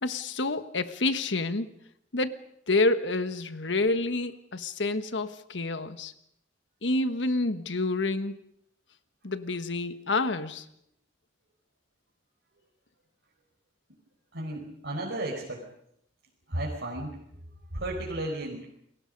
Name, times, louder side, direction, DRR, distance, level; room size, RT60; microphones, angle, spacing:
voice 1, 0.0-1.7 2.1-2.4 2.7-6.1 6.8-8.3 9.2-10.6, left 2 dB, 75° left, 10 dB, 1.4 m, -28 dB
voice 2, 14.3-15.6 16.5-17.1 17.7-18.6, right 1 dB, 70° right, -3 dB, 4.9 m, -33 dB
29.5 x 22.0 x 5.4 m, 0.74 s
head